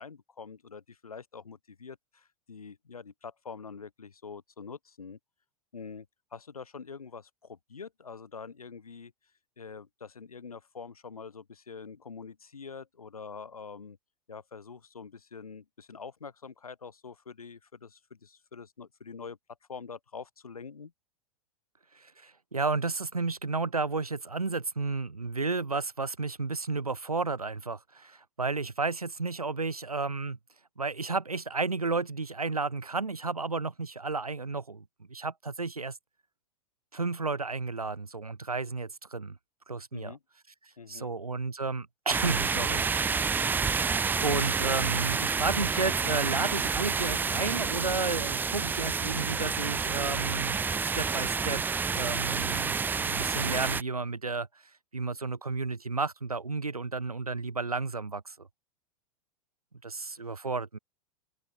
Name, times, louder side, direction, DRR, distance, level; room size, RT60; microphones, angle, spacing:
voice 1, 0.0-5.2 5.7-6.1 6.3-9.1 9.6-14.0 14.3-19.4 19.7-20.9 39.9-40.2 40.8-41.1, left 5 dB, 80° left, 2.5 m, -45 dB
voice 2, 22.0-30.4 30.8-34.8 35.1-36.0 36.9-39.4 39.7-40.1 40.9-42.8 43.8-51.6 51.9-54.5 54.9-58.5 59.8-60.8, right 3 dB, 85° right, 2.1 m, -32 dB
sound 1, 42.1-53.8, right 5 dB, 10° right, 0.4 m, -29 dB
open air
figure-of-eight pair, 95°, 18 cm